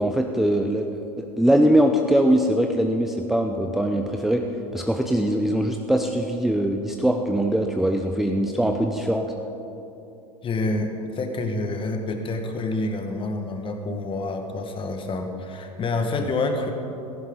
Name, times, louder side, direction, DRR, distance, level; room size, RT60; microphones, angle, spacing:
voice 1, 0.0-4.4 4.7-9.3, right 1 dB, ahead, 3 dB, 0.7 m, -22 dB
voice 2, 10.4-16.7, left 2 dB, 25° left, 5 dB, 1.7 m, -28 dB
17.0 x 14.5 x 4.0 m, 2.9 s
hypercardioid pair, 100°, 20 cm